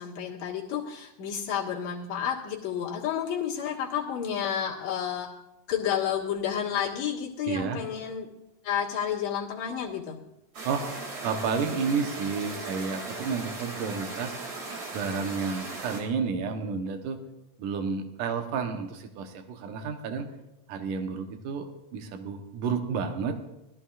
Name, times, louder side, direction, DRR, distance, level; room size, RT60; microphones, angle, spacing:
voice 1, 0.0-5.3 5.7-8.3 8.6-10.2, left 8 dB, 65° left, -5 dB, 2.8 m, -30 dB
voice 2, 7.5-7.8 10.6-10.9 11.2-14.4 14.9-17.2 17.6-20.3 20.7-23.4, right 5 dB, 80° right, 6 dB, 2.6 m, -31 dB
sound 1, 10.5-16.0, right 3 dB, 65° right, 3.7 m, -38 dB
19.5 x 13.5 x 2.4 m, 0.92 s
omnidirectional pair, 3.7 m